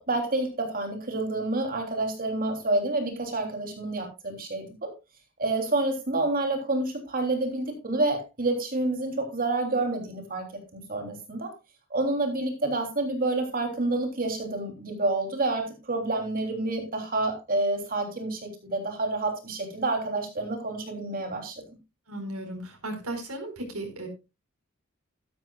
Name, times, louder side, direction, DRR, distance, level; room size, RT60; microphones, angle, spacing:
voice 1, 0.0-4.9 5.4-10.5 10.7-11.5 11.9-21.5, right 2 dB, 40° right, 4 dB, 3.2 m, -28 dB
voice 2, 22.1-24.1, right 1 dB, 80° right, 3 dB, 4.6 m, -35 dB
13.5 x 12.0 x 2.4 m, 0.26 s
head